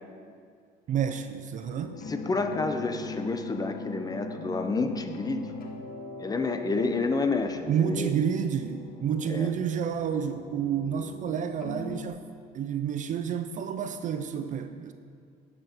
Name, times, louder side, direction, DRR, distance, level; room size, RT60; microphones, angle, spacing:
voice 1, 0.9-2.0 7.7-12.2 12.5-14.9, right 8 dB, 50° right, 8 dB, 0.4 m, -29 dB
sound 1, 1.6-12.1, left 2 dB, 60° left, 1.1 m, -41 dB
voice 2, 2.1-5.5 6.2-8.1 9.3-9.5, left 3 dB, 20° left, 7 dB, 0.6 m, -29 dB
9.8 x 6.8 x 4.5 m, 2.2 s
cardioid pair, 110°, 17 cm